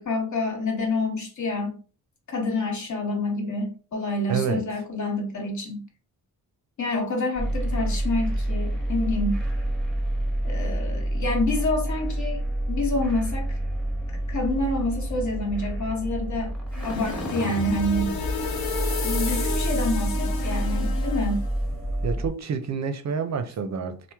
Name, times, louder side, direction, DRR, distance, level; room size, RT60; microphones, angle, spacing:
voice 1, 0.0-1.8 2.3-5.8 6.8-9.4 10.4-12.4 12.7-13.5 14.3-16.5 16.8-18.2 19.0-21.4, left 2 dB, 55° left, 1.1 m, -27 dB
voice 2, 4.3-4.6 22.0-24.1, right 6 dB, 50° right, 0.4 m, -28 dB
sound 1, 7.4-22.3, right 1 dB, ahead, 0.7 m, -28 dB
sound 2, 16.7-21.5, left 4 dB, 80° left, 0.6 m, -33 dB
sound 3, 17.8-21.0, left 5 dB, 40° left, 0.6 m, -37 dB
2.9 x 2.0 x 3.3 m
cardioid pair, 100°, 35 cm